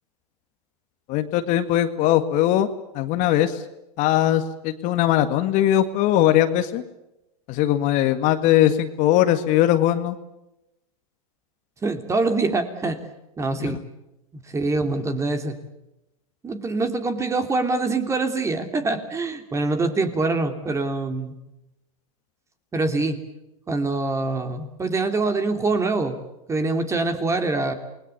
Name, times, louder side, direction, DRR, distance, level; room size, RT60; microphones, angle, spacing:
voice 1, 1.1-2.7 2.9-3.6 4.0-6.8 7.5-10.2 13.6-13.7, left 12 dB, 40° left, 9 dB, 1.9 m, -20 dB
voice 2, 11.8-13.0 13.4-13.8 14.3-15.6 16.4-21.3 22.7-23.2 23.7-26.2 26.5-27.7, right 3 dB, 15° right, 7 dB, 3.0 m, -24 dB
28.5 x 21.5 x 7.0 m, 0.91 s
hypercardioid pair, 115°, 19 cm